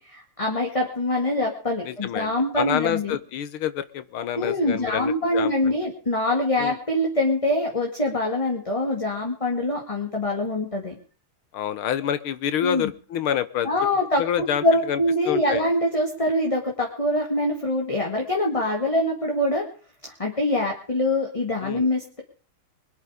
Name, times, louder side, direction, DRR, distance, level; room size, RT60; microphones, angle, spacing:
voice 1, 0.0-3.2 4.3-10.9 12.6-12.9 13.6-19.6 20.0-22.2, left 1 dB, 15° left, 1 dB, 2.1 m, -24 dB
voice 2, 1.8-2.3 2.6-5.8 6.6-6.8 11.5-13.7 14.2-15.0 15.3-15.6 21.6-21.9, left 10 dB, 85° left, 14 dB, 1.8 m, -27 dB
21.5 x 11.0 x 5.1 m, 0.41 s
omnidirectional pair, 2.3 m